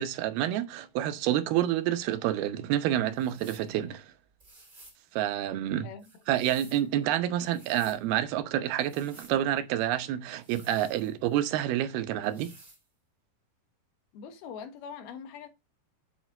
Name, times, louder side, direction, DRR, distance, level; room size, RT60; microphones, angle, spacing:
voice 1, 0.0-4.1 5.1-5.9 6.3-12.5, right 12 dB, 75° right, 2.7 m, -28 dB
sound 1, 3.1-3.7 4.4-5.0 6.0-6.9 7.4-8.0 8.8-9.4 10.4-11.4 12.2-12.8, right 2 dB, 20° right, 1.5 m, -54 dB
voice 2, 5.8-6.2 14.1-15.5, left 7 dB, 70° left, 3.2 m, -43 dB
8.3 x 7.8 x 3.8 m
omnidirectional pair, 4.7 m